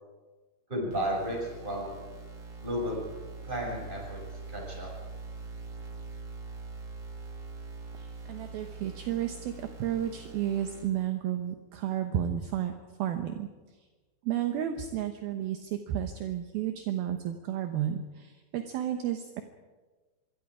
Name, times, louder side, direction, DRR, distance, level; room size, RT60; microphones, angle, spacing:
voice 1, 0.7-1.9 2.6-3.0 3.4-4.2 4.5-4.9, equal, 10° right, -1 dB, 6.3 m, -33 dB
sound 1, 0.9-10.9, right 4 dB, 30° right, 1.5 m, -43 dB
voice 2, 7.9-12.7 13.0-13.5 14.2-19.4, right 10 dB, 70° right, 6 dB, 2.4 m, -32 dB
26.0 x 23.5 x 5.0 m, 1.3 s
omnidirectional pair, 5.5 m